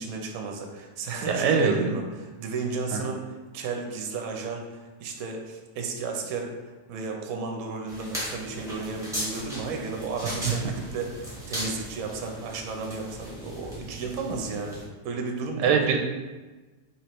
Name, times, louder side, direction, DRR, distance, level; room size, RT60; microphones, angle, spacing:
voice 1, 0.0-4.6 5.0-11.1 11.5-14.8 15.0-15.8, right 4 dB, 65° right, 2 dB, 1.0 m, -33 dB
voice 2, 1.3-1.9 2.9-3.0 10.2-10.3 15.6-16.0, right 6 dB, 90° right, 2 dB, 1.2 m, -22 dB
sound 1, 7.9-14.8, equal, ahead, 1.0 m, -37 dB
4.4 x 3.2 x 3.0 m, 1.2 s
omnidirectional pair, 1.8 m